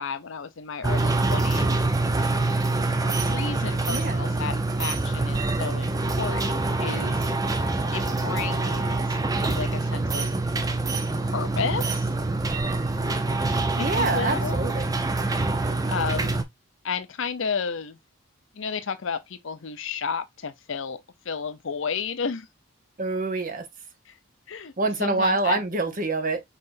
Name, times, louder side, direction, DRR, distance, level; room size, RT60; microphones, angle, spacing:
voice 1, 0.0-1.8 3.1-7.2 7.9-10.3 11.2-12.1 13.8-14.6 15.9-16.3 16.8-18.0 18.5-21.0 21.2-22.5 24.1-24.2 24.5-24.7 25.0-25.6, left 6 dB, 60° left, 0.6 m, -32 dB
sound 1, 0.8-16.4, right 2 dB, 15° right, 0.4 m, -25 dB
voice 2, 3.9-4.3 13.7-14.9 23.0-23.6 24.8-26.4, right 3 dB, 40° right, 0.8 m, -26 dB
5.6 x 3.2 x 2.5 m
head